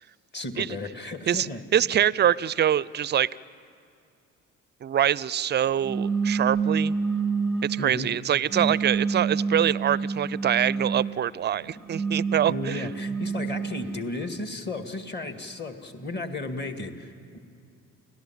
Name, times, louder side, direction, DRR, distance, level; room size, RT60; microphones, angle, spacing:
voice 1, 0.3-1.6 7.8-8.1 12.5-17.4, left 2 dB, 30° left, 7 dB, 2.1 m, -34 dB
voice 2, 1.3-3.3 4.8-6.9 7.6-12.9, right 10 dB, 30° right, 22 dB, 0.5 m, -24 dB
sound 1, 5.8-7.9 8.5-11.2 11.8-14.1, right 5 dB, ahead, 1.0 m, -28 dB
29.0 x 18.0 x 7.6 m, 2.5 s
hypercardioid pair, 55°, 38 cm